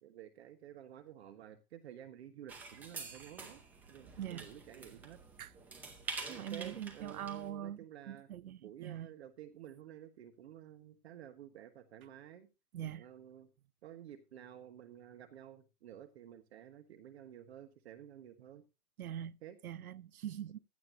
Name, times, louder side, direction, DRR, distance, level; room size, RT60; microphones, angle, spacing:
voice 1, 0.0-3.6 3.9-5.2 6.3-8.3 8.6-12.5 12.9-13.5 13.8-18.6 19.4-19.6, right 10 dB, 40° right, 1.4 m, -52 dB
sound 1, 2.5-7.5, right 4 dB, 5° right, 0.6 m, -47 dB
voice 2, 6.3-9.1 12.7-13.1 19.0-19.4 19.6-20.6, right 10 dB, 65° right, 0.7 m, -43 dB
16.0 x 12.0 x 2.7 m
hypercardioid pair, 140°, 48 cm